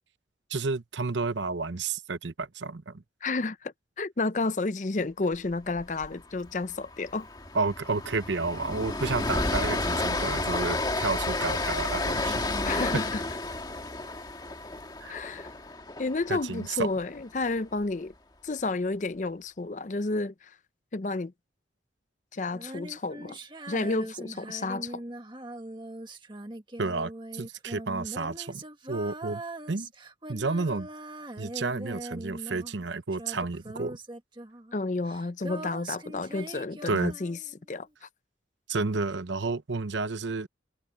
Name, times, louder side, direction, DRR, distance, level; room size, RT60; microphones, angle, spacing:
voice 1, 0.5-3.0 7.5-12.4 15.0-15.2 16.3-16.9 26.8-29.4 29.7-29.9 30.3-30.9 31.4-34.0 36.9-37.1 38.7-40.5, right 3 dB, 85° right, 0.9 m, -31 dB
voice 2, 3.2-7.3 12.6-13.2 15.1-15.5 16.0-18.1 18.4-20.5 20.9-21.3 22.3-23.4 23.7-25.0 34.7-37.4 37.7-38.1, left 3 dB, 40° left, 0.6 m, -31 dB
Train, 5.8-6.1 6.3-6.5 6.9-17.0, left 2 dB, 25° left, 2.0 m, -31 dB
Female singing, 22.5-32.9 33.1-37.6, right 1 dB, 25° right, 1.6 m, -41 dB
head